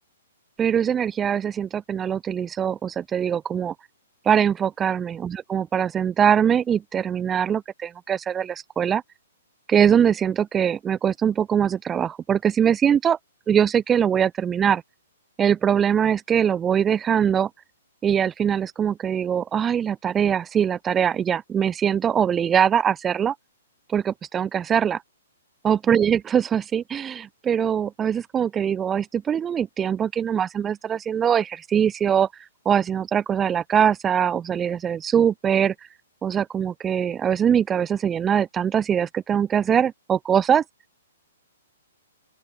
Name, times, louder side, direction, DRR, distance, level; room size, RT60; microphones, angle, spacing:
voice 1, 0.6-3.7 4.2-9.0 9.7-13.2 13.5-14.8 15.4-17.5 18.0-23.3 23.9-25.0 25.6-32.3 32.6-35.7 36.2-40.6, right 8 dB, 15° right, 4.8 m, -22 dB
open air
figure-of-eight pair, 115°, 0 cm